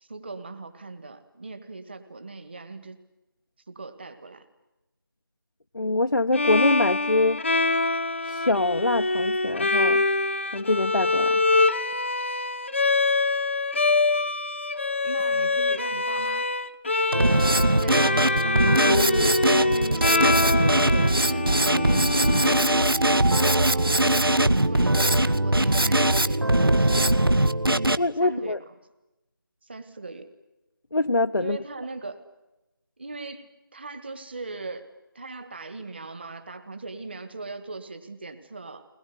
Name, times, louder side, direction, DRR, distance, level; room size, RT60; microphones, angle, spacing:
voice 1, 0.0-3.0 3.7-4.4 15.0-16.5 17.8-22.8 23.7-24.3 24.6-27.5 28.2-28.6 29.6-30.3 31.4-32.2 33.0-34.9 35.2-38.9, right 3 dB, 30° right, 10 dB, 1.8 m, -40 dB
voice 2, 5.7-7.4 8.2-10.0 10.5-11.4 28.0-28.6 30.9-31.6, left 2 dB, 65° left, 6 dB, 0.8 m, -24 dB
Bowed string instrument, 6.3-23.2, left 3 dB, 35° left, 0.9 m, -25 dB
Drum kit, 17.1-27.9, right 1 dB, 80° right, 1.2 m, -21 dB
22.5 x 21.0 x 9.7 m, 0.99 s
figure-of-eight pair, 165°, 12 cm